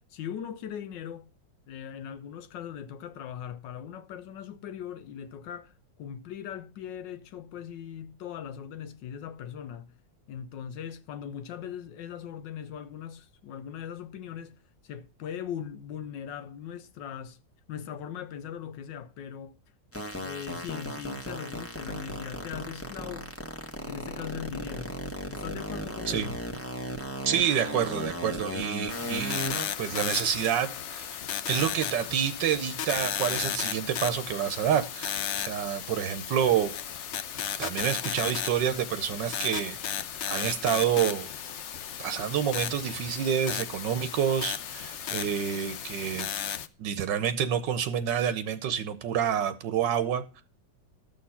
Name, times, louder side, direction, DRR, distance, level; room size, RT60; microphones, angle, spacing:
voice 1, 0.1-1.3 1.7-9.9 10.3-17.4 17.7-19.6 20.2-23.4 23.9-25.0 25.3-26.4, left 9 dB, 80° left, 1.4 m, -40 dB
sound 1, 19.9-29.7, equal, 10° left, 1.1 m, -36 dB
voice 2, 27.2-29.4 29.8-31.2 31.5-36.7 37.6-39.8 40.3-41.3 42.0-46.3 46.8-50.4, right 9 dB, 80° right, 1.4 m, -28 dB
sound 2, 28.9-46.7, left 9 dB, 65° left, 0.7 m, -35 dB
12.5 x 6.5 x 5.6 m
omnidirectional pair, 2.0 m